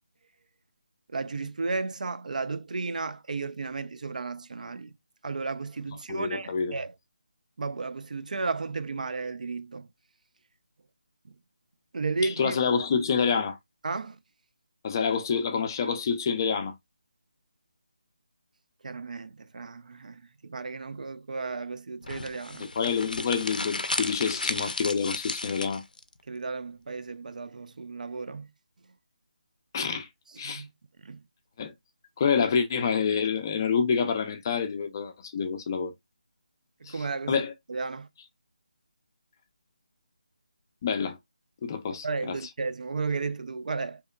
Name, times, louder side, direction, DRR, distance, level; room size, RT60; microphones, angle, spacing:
voice 1, 1.1-4.9 5.2-6.9 7.6-9.9 11.9-12.5 13.8-14.2 18.8-22.7 26.3-28.5 30.4-30.7 31.0-31.2 36.8-37.4 37.7-38.1 42.0-44.0, right 4 dB, 70° right, 0.3 m, -33 dB
voice 2, 6.1-6.8 12.2-13.6 14.8-16.7 22.6-25.8 29.7-30.1 30.4-30.6 31.6-31.7 32.2-35.9 36.9-37.5 40.8-41.2 41.6-42.4, left 6 dB, 25° left, 0.4 m, -27 dB
sound 1, 22.0-26.0, left 2 dB, 90° left, 0.4 m, -33 dB
2.8 x 2.2 x 2.2 m
figure-of-eight pair, 160°, 4 cm